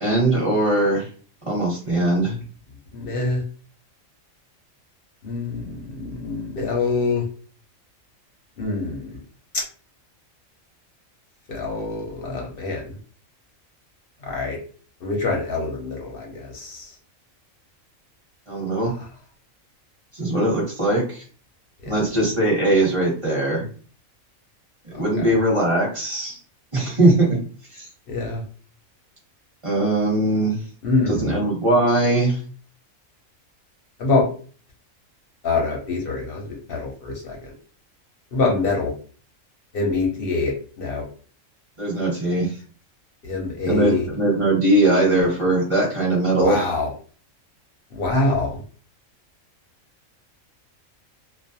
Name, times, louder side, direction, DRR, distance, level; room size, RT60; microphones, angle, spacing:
voice 1, 0.0-1.0 1.4-2.4 18.5-18.9 20.1-21.2 21.9-23.6 24.9-26.4 26.7-27.3 27.7-27.9 29.6-30.6 31.1-32.4 41.8-42.5 43.7-46.7, right 1 dB, 30° right, -4 dB, 0.8 m, -20 dB
voice 2, 2.9-3.4 5.2-7.2 8.6-9.2 9.5-9.6 11.5-13.0 14.2-14.6 15.0-16.9 19.0-19.1 21.8-21.9 25.1-25.2 28.1-28.4 30.8-31.4 34.0-34.3 35.4-37.4 38.3-38.9 39.7-41.0 43.2-44.1 46.4-46.9 47.9-48.6, left 3 dB, 55° left, 0 dB, 0.7 m, -25 dB
2.3 x 2.1 x 2.6 m, 0.42 s
omnidirectional pair, 1.4 m